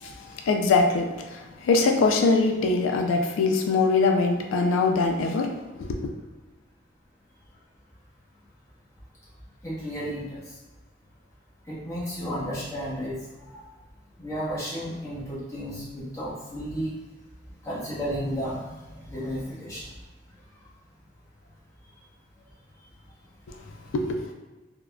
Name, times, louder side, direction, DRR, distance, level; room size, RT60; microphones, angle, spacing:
voice 1, 0.5-6.1 23.5-23.6 23.9-24.3, left 3 dB, 85° left, 4 dB, 0.3 m, -23 dB
voice 2, 9.6-10.4 11.7-13.5 14.2-16.9 17.6-18.8 19.0-19.8 24.0-24.1, equal, 15° left, -9 dB, 0.8 m, -33 dB
3.5 x 2.1 x 2.2 m, 1.2 s
head